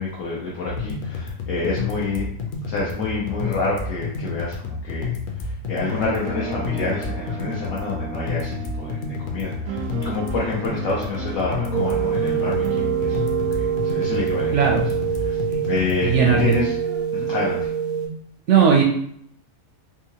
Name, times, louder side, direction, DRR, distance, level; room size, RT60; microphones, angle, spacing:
voice 1, 0.0-2.3 2.7-5.1 5.4-13.4 13.8-14.6 15.2-15.4 15.7-16.7 17.1-17.7, left 3 dB, 65° left, -5 dB, 1.0 m, -28 dB
sound 1, 0.6-16.6, left 4 dB, 90° left, 0.4 m, -30 dB
sound 2, 5.8-16.2 16.5-17.1, right 7 dB, 85° right, 1.1 m, -35 dB
sound 3, 11.7-18.1, right 8 dB, 40° left, 0.7 m, -25 dB
voice 2, 16.0-16.6 18.5-18.8, right 6 dB, 65° right, 0 dB, 0.7 m, -17 dB
3.6 x 2.8 x 2.8 m, 0.68 s
omnidirectional pair, 1.6 m